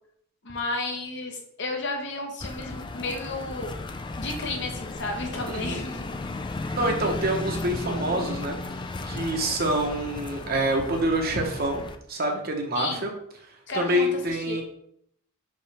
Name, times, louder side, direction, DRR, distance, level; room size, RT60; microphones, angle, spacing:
voice 1, 0.4-3.8 4.2-6.1 12.7-13.0 13.7-14.6, left 2 dB, 55° left, 2 dB, 1.1 m, -33 dB
sound 1, 2.4-12.0, left 2 dB, 20° left, 0.3 m, -35 dB
voice 2, 5.5-5.8 6.7-8.6 9.0-11.8 12.1-13.1 13.7-14.6, right 1 dB, 45° right, 2 dB, 1.1 m, -26 dB
5.4 x 5.3 x 3.4 m, 0.70 s
head